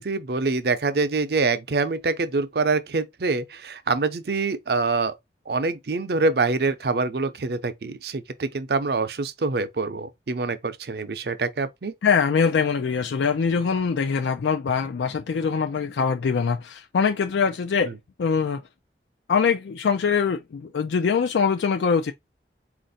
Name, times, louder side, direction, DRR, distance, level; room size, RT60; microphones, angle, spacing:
voice 1, 0.0-5.1 5.5-11.9, right 3 dB, 60° right, 0.5 m, -25 dB
voice 2, 12.0-17.9 18.2-18.6 19.3-22.1, left 6 dB, 85° left, 0.4 m, -23 dB
4.2 x 2.5 x 3.9 m
head